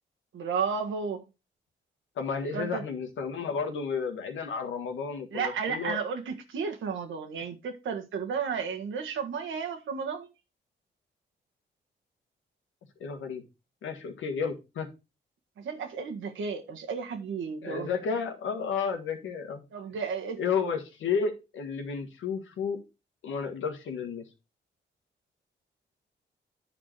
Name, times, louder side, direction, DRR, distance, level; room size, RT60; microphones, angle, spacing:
voice 1, 0.3-1.3 2.5-2.8 5.3-10.3 15.6-17.9 19.7-20.4, right 6 dB, 85° right, 1.7 m, -33 dB
voice 2, 2.2-6.0 13.0-13.4 13.8-14.9 17.6-19.6 20.4-22.8 23.2-24.2, left 5 dB, 85° left, 1.6 m, -32 dB
9.6 x 4.5 x 4.6 m
cardioid pair, 65°, 20 cm